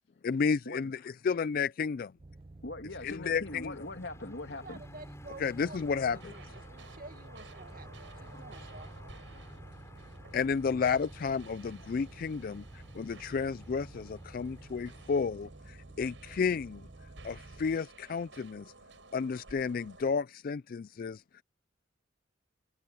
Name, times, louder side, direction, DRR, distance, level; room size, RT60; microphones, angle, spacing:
voice 1, 0.2-2.1 3.0-3.7 5.4-6.3 10.3-16.9 17.2-18.7 19.1-21.4, left 5 dB, 50° left, 0.4 m, -32 dB
sound 1, 2.2-17.8, right 2 dB, 30° right, 0.5 m, -51 dB
voice 2, 2.6-4.8, left 2 dB, 70° left, 2.6 m, -41 dB
sound 2, 3.4-15.2, left 1 dB, 15° left, 6.8 m, -53 dB
voice 3, 4.6-5.8 6.1-8.9, right 2 dB, 50° right, 1.9 m, -50 dB
sound 3, 5.8-20.2, right 3 dB, 85° right, 6.1 m, -55 dB
head